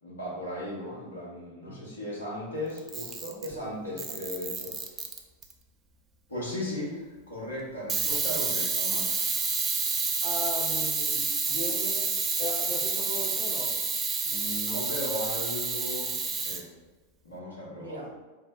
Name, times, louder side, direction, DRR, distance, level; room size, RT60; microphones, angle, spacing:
voice 1, 0.0-5.1 6.3-9.2 14.2-16.6 17.2-18.1, left 1 dB, 70° left, -6 dB, 1.2 m, -37 dB
voice 2, 1.7-2.0 3.4-4.2 10.2-13.9 17.8-18.1, equal, 75° right, -2 dB, 0.6 m, -38 dB
Camera, 2.8-3.5 4.0-5.5 7.9-16.6, right 4 dB, 20° right, 0.3 m, -29 dB
2.6 x 2.0 x 3.6 m, 1.2 s
figure-of-eight pair, 90°, 0 cm